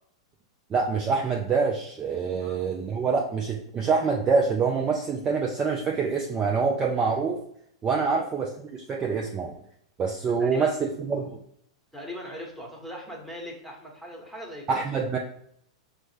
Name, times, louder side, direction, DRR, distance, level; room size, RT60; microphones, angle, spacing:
voice 1, 0.7-7.4 7.8-9.5 10.0-11.4 14.7-15.2, right 5 dB, 25° right, 0 dB, 0.5 m, -26 dB
voice 2, 10.4-10.8 11.9-14.7, equal, ahead, -2 dB, 1.2 m, -40 dB
6.2 x 2.1 x 3.3 m, 0.70 s
figure-of-eight pair, 100°, 3 cm